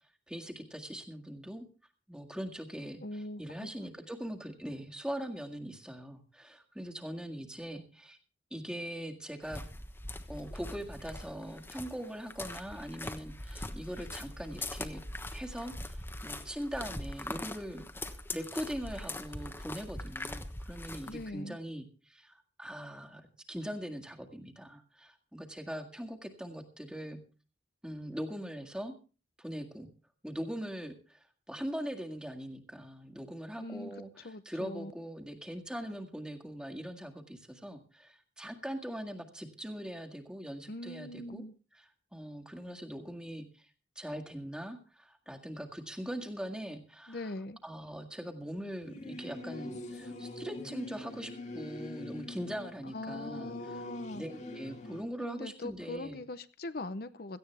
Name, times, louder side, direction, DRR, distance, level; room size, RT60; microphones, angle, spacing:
voice 1, 0.3-1.7 2.1-8.2 8.5-9.6 10.3-15.0 15.3-27.2 27.8-28.9 29.4-29.9 30.2-41.4 41.7-43.7 44.0-47.3 47.6-53.7 54.1-56.2, equal, 5° right, 4 dB, 1.8 m, -41 dB
voice 2, 3.0-3.7 21.1-21.6 33.5-33.9 34.2-34.9 40.7-41.5 47.1-47.6 52.9-54.2 55.2-57.4, left 2 dB, 55° left, 12 dB, 0.7 m, -41 dB
sound 1, 9.4-21.3, left 1 dB, 15° left, 1.2 m, -42 dB
Singing / Musical instrument, 48.8-55.0, left 2 dB, 40° left, 2.1 m, -44 dB
17.0 x 15.0 x 3.4 m, 0.35 s
head